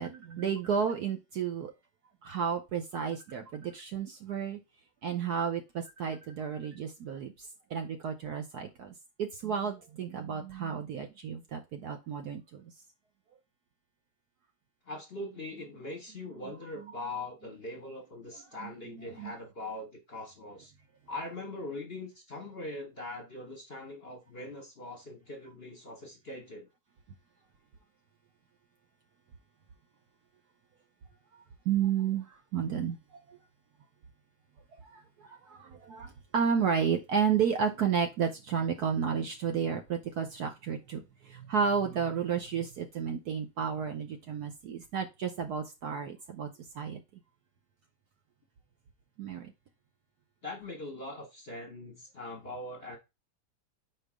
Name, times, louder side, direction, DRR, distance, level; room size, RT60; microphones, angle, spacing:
voice 1, 0.0-1.7 2.2-4.6 5.0-12.7 16.9-17.0 18.5-19.3 31.6-33.4 34.8-47.0 49.2-49.5, right 7 dB, 65° right, 1.1 m, -32 dB
voice 2, 14.9-20.7 21.1-26.7 50.4-53.0, left 2 dB, 40° left, 1.0 m, -41 dB
4.6 x 4.5 x 4.9 m
omnidirectional pair, 2.2 m